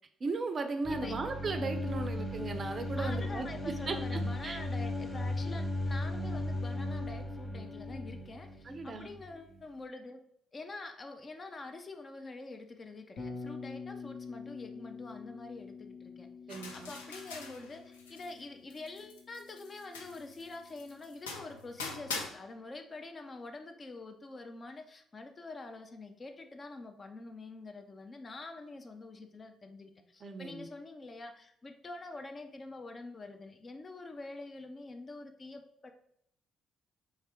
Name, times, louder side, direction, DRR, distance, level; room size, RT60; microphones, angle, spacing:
voice 1, 0.2-4.6 8.6-9.1 16.5-16.9 30.2-30.7, right 3 dB, 40° right, 8 dB, 0.5 m, -37 dB
sound 1, 0.8-9.7, left 1 dB, 5° left, 1.0 m, -36 dB
voice 2, 3.0-10.2 10.5-16.3 16.7-35.9, left 2 dB, 30° left, 5 dB, 0.6 m, -46 dB
Bass guitar, 13.2-21.2, left 4 dB, 60° left, 1.0 m, -47 dB
sound 2, 16.5-18.4 18.7-22.3, left 4 dB, 75° left, 0.5 m, -43 dB
3.6 x 3.3 x 4.3 m, 0.70 s
figure-of-eight pair, 45°, 0 cm